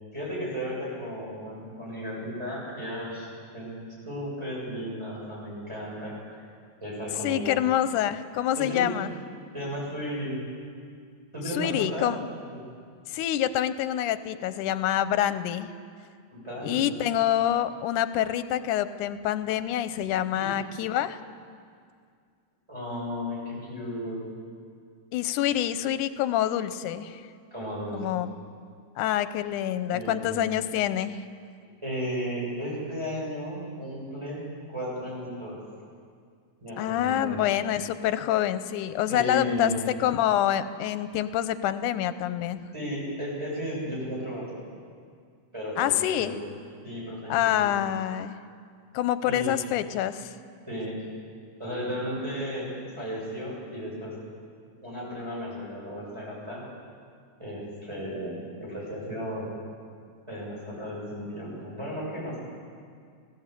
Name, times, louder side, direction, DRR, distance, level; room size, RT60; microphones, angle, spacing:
voice 1, 0.1-6.4 6.8-7.6 8.6-8.9 9.5-10.4 11.3-12.1 12.5-12.6 16.3-16.9 20.3-20.6 22.7-24.2 27.5-28.1 29.9-30.4 31.8-34.5 34.7-35.6 36.6-37.4 39.1-39.8 42.7-44.6 45.5-46.4 46.8-47.7 49.3-49.5 50.7-51.0 51.6-54.2 54.8-56.6 57.4-59.5 60.3-62.4, equal, 10° right, -6 dB, 7.4 m, -34 dB
voice 2, 7.2-9.1 11.5-12.2 13.1-15.7 16.6-21.2 25.1-27.2 27.9-28.3 29.0-31.2 36.8-39.7 40.0-42.6 45.8-46.4 47.3-48.4 48.9-50.3, left 11 dB, 90° left, 13 dB, 2.2 m, -26 dB
19.0 x 16.5 x 8.3 m, 2.2 s
omnidirectional pair, 3.5 m